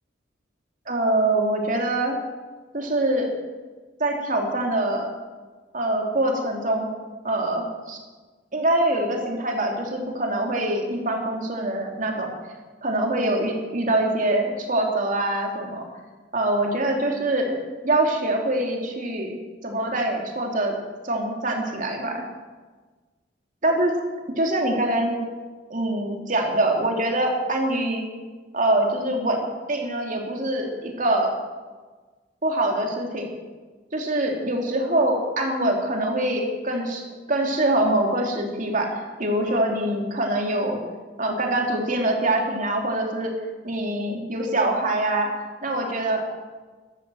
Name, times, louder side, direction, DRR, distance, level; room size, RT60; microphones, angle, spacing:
voice 1, 0.9-2.2 2.7-3.3 4.0-5.1 5.7-6.9 7.2-8.0 8.5-12.3 12.8-15.9 16.3-17.6 17.8-19.4 19.6-20.8 21.0-22.2 23.6-23.9 24.4-25.2 25.7-28.0 28.5-31.3 32.4-33.3 33.9-37.0 37.3-40.8 41.2-43.3 43.6-45.3 45.6-46.3, right 1 dB, 45° right, 1 dB, 3.2 m, -24 dB
13.5 x 13.0 x 7.8 m, 1.3 s
head